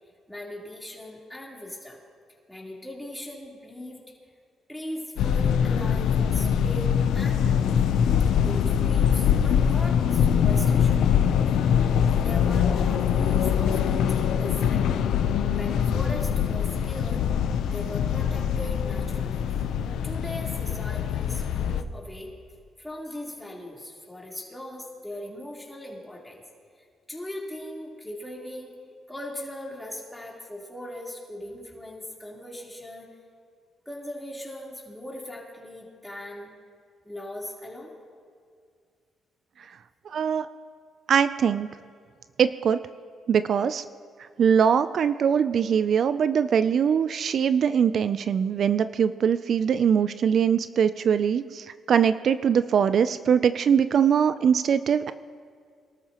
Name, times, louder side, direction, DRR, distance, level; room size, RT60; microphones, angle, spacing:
voice 1, 0.3-2.0 2.5-4.0 4.7-7.9 8.4-11.1 12.2-14.8 15.5-17.3 17.7-19.6 20.0-22.3 22.8-26.4 27.1-28.7 29.1-33.1 33.9-36.5 37.0-37.9, left 1 dB, 5° left, -4 dB, 3.6 m, -39 dB
sound 1, 5.2-21.8, left 8 dB, 80° left, 0.6 m, -23 dB
voice 2, 40.1-40.5 41.1-41.7 42.4-42.8 43.3-43.8 44.4-55.1, right 7 dB, 60° right, 13 dB, 0.4 m, -22 dB
24.0 x 13.0 x 3.0 m, 2.1 s
cardioid pair, 90°, 0 cm